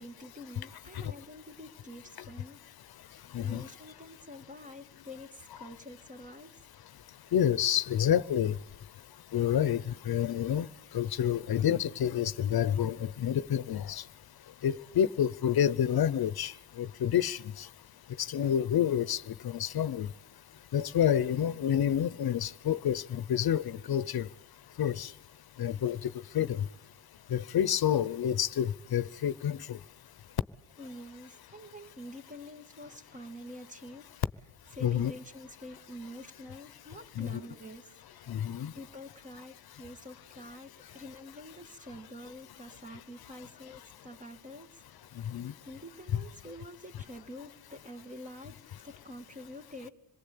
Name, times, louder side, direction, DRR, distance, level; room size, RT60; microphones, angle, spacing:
voice 1, 0.0-2.6 3.4-6.6 30.8-34.1 34.7-37.9 38.7-44.8 45.7-49.9, equal, 20° right, 2.1 m, -47 dB
voice 2, 2.9-3.6 6.8-14.1 14.4-17.7 18.1-20.1 20.7-24.3 24.7-25.2 25.6-26.7 27.3-29.8 34.8-35.1 37.2-37.4 38.3-38.8 40.9-41.0 45.1-45.7, left 9 dB, 70° left, 0.9 m, -29 dB
26.0 x 22.0 x 8.6 m
wide cardioid pair, 135°, 39 cm